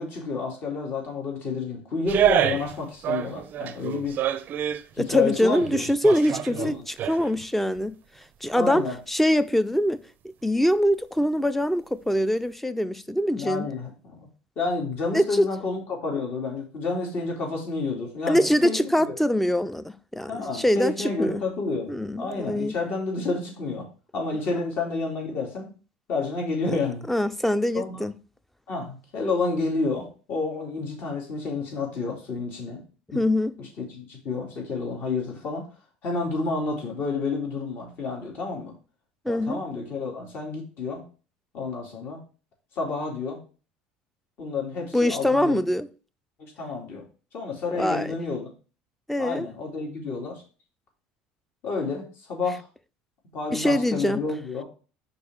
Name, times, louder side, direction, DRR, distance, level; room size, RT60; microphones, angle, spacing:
voice 1, 0.0-4.2 4.9-5.8 6.3-6.8 8.5-9.0 13.3-14.3 14.6-19.1 20.3-23.9 24.1-25.7 26.1-27.1 27.7-28.1 28.7-32.8 33.1-33.2 33.6-35.6 36.0-38.7 39.3-41.0 41.5-42.2 42.8-43.4 44.4-45.6 46.4-47.0 47.3-48.5 49.2-50.4 51.6-52.7 53.3-54.6, left 3 dB, 55° left, 2.5 m, -30 dB
sound 1, 2.1-2.8 3.0-4.8 5.4-7.4 7.8-7.9, right 10 dB, 50° right, 0.5 m, -27 dB
voice 2, 5.0-8.0 8.4-10.0 10.4-13.7 15.1-15.5 18.3-21.4 21.9-22.7 26.7-26.8 27.1-28.1 33.1-33.5 39.3-39.6 44.9-45.9 47.8-48.1 49.1-49.5 53.5-54.2, equal, 5° left, 0.5 m, -23 dB
5.4 x 4.2 x 4.7 m
supercardioid pair, 90°, 4 cm